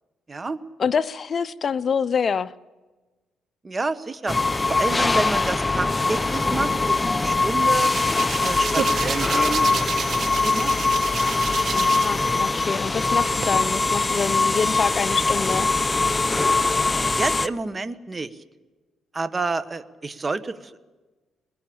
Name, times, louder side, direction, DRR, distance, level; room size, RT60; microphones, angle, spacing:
voice 1, 0.3-0.6 3.6-4.4 4.7-7.9 8.4-10.8 16.9-18.3 19.1-20.8, right 3 dB, 25° right, 1.5 m, -29 dB
voice 2, 0.8-2.5 11.7-15.7, left 6 dB, 45° left, 0.8 m, -26 dB
sound 1, 4.3-17.5, left 3 dB, 20° left, 0.8 m, -22 dB
Hands, 7.2-12.2 12.5-13.4, right 7 dB, 55° right, 1.5 m, -31 dB
23.0 x 21.0 x 8.8 m
cardioid pair, 90°, 0 cm